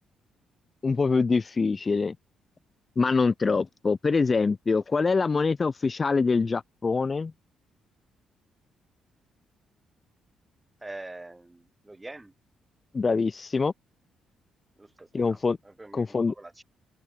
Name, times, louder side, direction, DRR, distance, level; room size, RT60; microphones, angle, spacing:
voice 1, 0.8-2.1 3.0-7.3 12.9-13.7 15.1-15.6 15.9-16.3, left 4 dB, 30° left, 0.4 m, -24 dB
voice 2, 10.8-12.3 14.8-15.4 15.6-16.6, right 2 dB, 15° right, 1.1 m, -44 dB
open air
cardioid pair, 90°, 0 cm